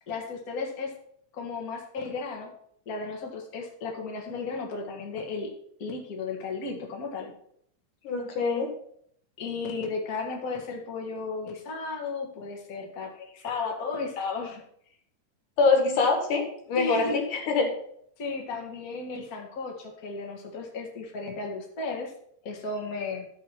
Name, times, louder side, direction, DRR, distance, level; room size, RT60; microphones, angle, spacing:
voice 1, 0.1-0.9 1.3-2.5 2.9-5.5 5.8-7.3 9.4-14.6 16.8-17.2 18.2-22.1 22.4-23.3, left 4 dB, 35° left, 0 dB, 1.6 m, -34 dB
voice 2, 8.0-8.7 15.6-17.7, left 4 dB, 75° left, 3 dB, 3.2 m, -24 dB
12.0 x 4.8 x 5.9 m, 0.67 s
omnidirectional pair, 3.7 m